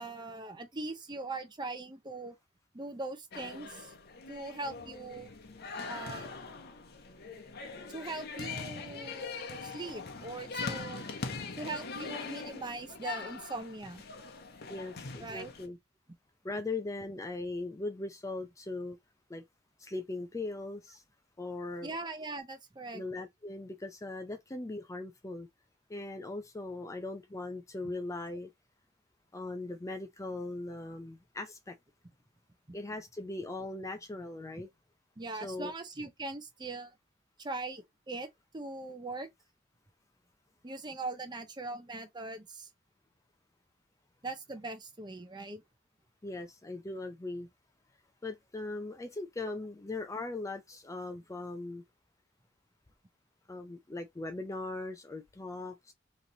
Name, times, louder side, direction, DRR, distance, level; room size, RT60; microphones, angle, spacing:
voice 1, 0.0-2.4 2.7-3.9 4.3-5.3 5.9-6.3 7.9-11.1 11.6-14.0 15.2-15.5 21.8-23.0 35.2-36.9 37.4-38.3 38.5-39.3 40.6-42.7 44.2-45.6 49.4-49.6, right 2 dB, 20° right, 0.7 m, -41 dB
sound 1, 3.3-15.7, left 4 dB, 55° left, 0.8 m, -42 dB
voice 2, 14.7-15.8 16.4-19.0 19.3-19.4 19.8-21.0 21.4-21.9 22.9-25.5 25.9-28.5 29.3-31.8 32.7-34.7 35.4-35.7 46.2-47.5 48.2-51.8 53.5-55.9, left 2 dB, 15° left, 0.4 m, -39 dB
3.1 x 2.8 x 3.9 m
head